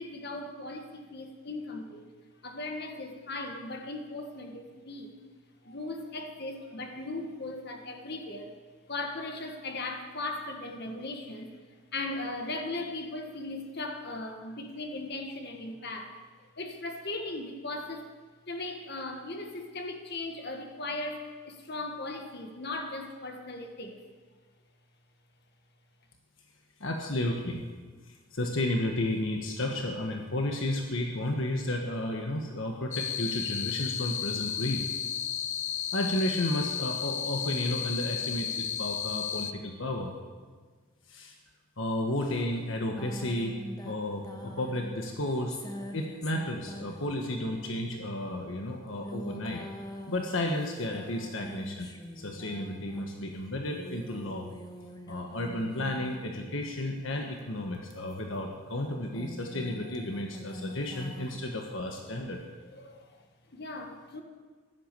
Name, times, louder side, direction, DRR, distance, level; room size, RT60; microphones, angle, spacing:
voice 1, 0.0-2.1 2.4-5.1 5.6-8.5 8.9-11.6 11.9-16.2 16.6-18.1 18.5-24.0 62.8-63.2 63.5-64.2, left 2 dB, 50° left, 4 dB, 1.7 m, -38 dB
voice 2, 26.8-27.6 28.1-34.8 35.9-40.1 41.1-41.3 41.8-43.6 43.8-45.6 45.9-49.6 50.1-51.9 52.2-54.5 55.1-62.4, left 1 dB, 70° left, 2 dB, 1.4 m, -32 dB
sound 1, 32.9-39.5, left 8 dB, 35° left, 0.5 m, -33 dB
sound 2, 43.0-57.1 57.7-61.4, equal, 20° left, 1.2 m, -45 dB
15.5 x 11.5 x 6.9 m, 1.4 s
head